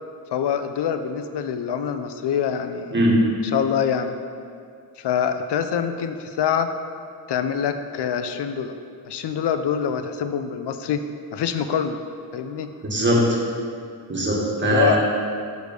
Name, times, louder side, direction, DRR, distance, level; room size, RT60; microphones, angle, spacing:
voice 1, 0.3-3.0 3.5-4.1 5.0-6.7 7.3-8.8 9.0-11.1 11.3-12.0 12.3-12.7 14.6-15.0, left 8 dB, 75° left, 9 dB, 0.6 m, -25 dB
voice 2, 12.8-13.4 14.1-15.0, right 1 dB, 25° right, -4 dB, 1.6 m, -20 dB
6.3 x 4.9 x 5.1 m, 2.3 s
wide cardioid pair, 95°, 41 cm